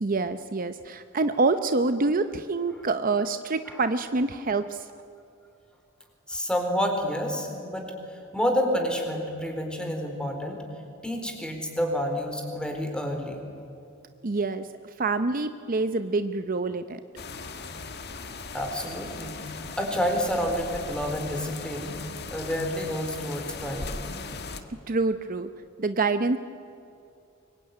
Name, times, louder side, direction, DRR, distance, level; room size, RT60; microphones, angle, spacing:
voice 1, 0.0-4.9 14.2-14.7 15.0-17.0 24.9-25.5 25.8-26.4, right 3 dB, 45° right, 10 dB, 0.7 m, -26 dB
voice 2, 6.3-10.6 11.0-13.4 18.5-22.0 22.3-24.0, equal, 5° left, 3 dB, 4.1 m, -29 dB
sound 1, 17.2-24.6, left 4 dB, 55° left, 1.7 m, -38 dB
25.0 x 22.5 x 9.6 m, 2.7 s
head